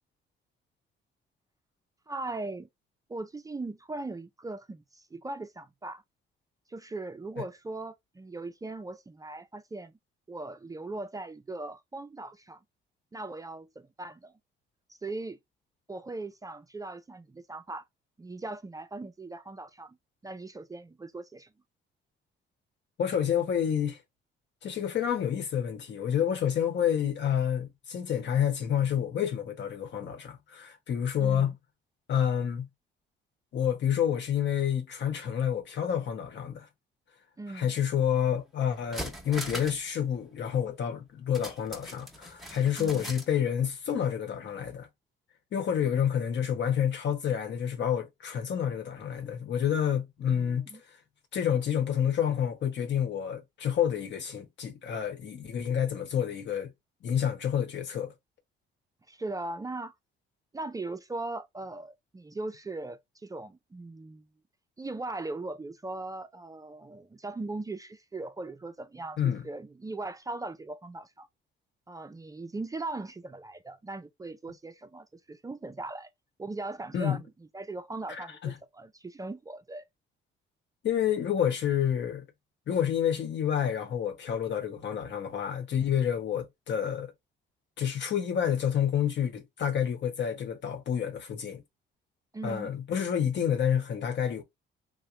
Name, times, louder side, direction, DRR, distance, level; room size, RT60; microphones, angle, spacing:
voice 1, 2.1-2.7 3.1-6.0 6.7-9.9 10.3-12.6 13.1-14.3 15.0-15.4 15.9-17.8 18.2-20.0 20.2-21.5 31.2-31.5 37.4-37.7 42.8-43.1 50.3-50.8 59.1-59.9 60.5-64.3 64.8-71.3 71.9-76.1 76.4-77.3 77.5-79.9 92.3-92.7, right 2 dB, 15° right, 0.4 m, -39 dB
voice 2, 23.0-24.0 24.6-31.5 32.1-32.7 33.5-36.7 37.5-44.9 45.5-50.6 51.3-56.7 57.0-58.1 69.2-69.5 76.9-77.2 78.1-78.5 80.8-82.2 82.7-87.1 87.8-91.6 92.4-94.4, left 9 dB, 65° left, 1.0 m, -29 dB
sound 1, 38.3-38.4 38.7-39.9 40.1-40.2 41.3-43.3 43.6-43.7, right 1 dB, ahead, 0.9 m, -40 dB
3.0 x 2.1 x 3.6 m
cardioid pair, 90°, 20 cm